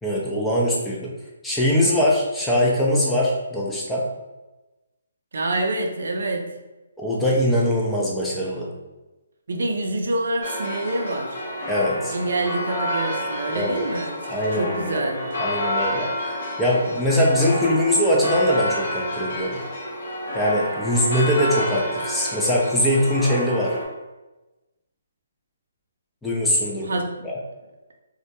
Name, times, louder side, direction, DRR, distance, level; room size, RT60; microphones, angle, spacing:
voice 1, 0.0-1.1 1.4-4.1 7.0-8.7 11.7-12.1 13.6-13.9 14.3-15.0 15.4-16.1 16.6-19.6 20.3-23.7 26.2-26.9 27.2-27.3, equal, 5° left, -5 dB, 0.4 m, -22 dB
voice 2, 5.3-6.5 9.5-11.4 12.1-15.3 26.8-27.3, right 2 dB, 70° right, 2 dB, 0.4 m, -27 dB
sound 1, 10.4-23.8, equal, 50° left, 0.7 m, -29 dB
2.1 x 2.1 x 2.8 m, 1.1 s
hypercardioid pair, 150°, 0 cm